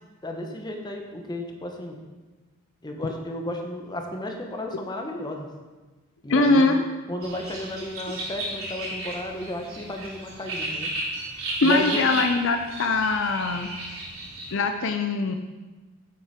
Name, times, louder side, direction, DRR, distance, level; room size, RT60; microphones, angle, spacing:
voice 1, 0.2-2.0 2.8-5.5 6.2-6.8 7.1-10.9 11.6-12.0, left 1 dB, 20° left, 2 dB, 1.1 m, -33 dB
voice 2, 6.3-6.8 11.6-13.7 14.5-15.3, left 3 dB, 60° left, 6 dB, 0.6 m, -22 dB
sound 1, 7.2-14.5, right 1 dB, 70° right, 3.2 m, -33 dB
9.4 x 8.2 x 4.4 m, 1.2 s
head